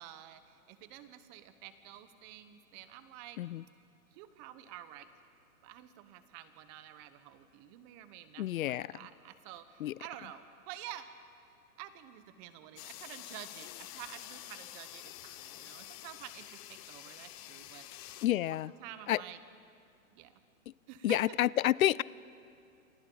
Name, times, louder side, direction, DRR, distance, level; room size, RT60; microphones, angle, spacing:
voice 1, 0.0-3.4 4.1-5.1 5.6-11.1 11.8-18.2 18.5-19.4 20.1-20.4 20.9-21.4, right 12 dB, 30° right, 11 dB, 1.1 m, -49 dB
voice 2, 8.4-8.9 9.8-9.9 18.2-18.7 19.1-19.2 21.0-22.0, left 14 dB, 75° left, 22 dB, 0.5 m, -29 dB
sound 1, 12.8-18.3, left 14 dB, 25° left, 0.7 m, -48 dB
29.0 x 25.5 x 4.0 m, 2.5 s
hypercardioid pair, 145°, 42 cm